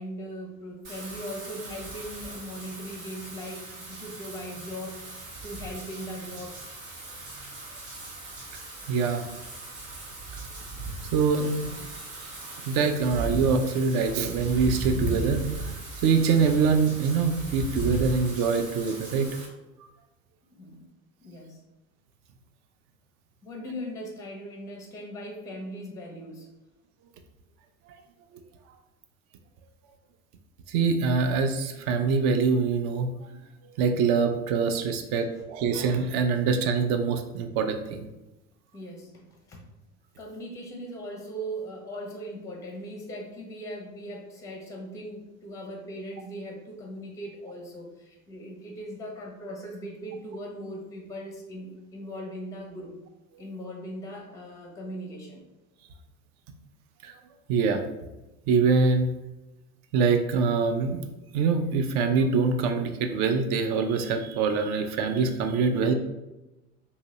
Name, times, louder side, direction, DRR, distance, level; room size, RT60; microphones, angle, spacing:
voice 1, 0.0-6.7 20.5-20.8 21.2-21.6 23.4-26.5 35.3-35.4 38.7-39.7 40.2-53.0 53.4-55.5, equal, 10° left, 1 dB, 0.6 m, -39 dB
Wind / Rain, 0.8-19.5, right 2 dB, 70° right, 1.0 m, -37 dB
voice 2, 8.9-9.2 11.1-11.9 12.7-15.5 16.0-19.3 30.7-33.1 33.8-38.0 57.0-57.1 57.5-57.8 58.5-59.1 59.9-61.0 61.3-65.9, right 5 dB, 40° right, 7 dB, 0.4 m, -24 dB
2.8 x 2.7 x 2.8 m, 0.99 s
figure-of-eight pair, 70°, 42 cm